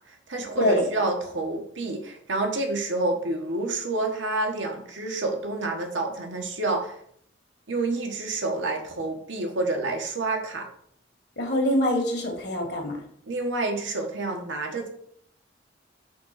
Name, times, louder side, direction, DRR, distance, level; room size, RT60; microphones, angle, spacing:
voice 1, 0.3-7.0 7.7-10.7 13.3-14.9, right 2 dB, 75° right, 2 dB, 1.4 m, -28 dB
voice 2, 11.4-13.0, left 1 dB, 60° left, 1 dB, 1.7 m, -24 dB
6.0 x 3.7 x 5.7 m, 0.65 s
head